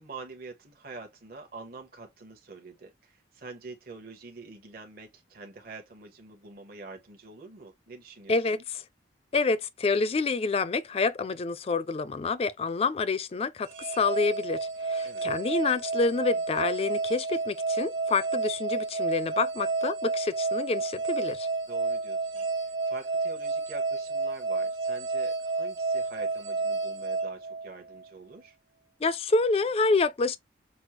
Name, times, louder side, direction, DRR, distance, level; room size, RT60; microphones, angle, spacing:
voice 1, 0.0-8.6 15.0-15.4 21.7-28.6, right 3 dB, 50° right, 0.9 m, -46 dB
voice 2, 8.3-8.8 9.3-21.5 29.0-30.4, left 4 dB, 30° left, 0.3 m, -28 dB
sound 1, 13.7-28.0, right 3 dB, 90° right, 1.2 m, -31 dB
6.1 x 2.0 x 2.9 m
head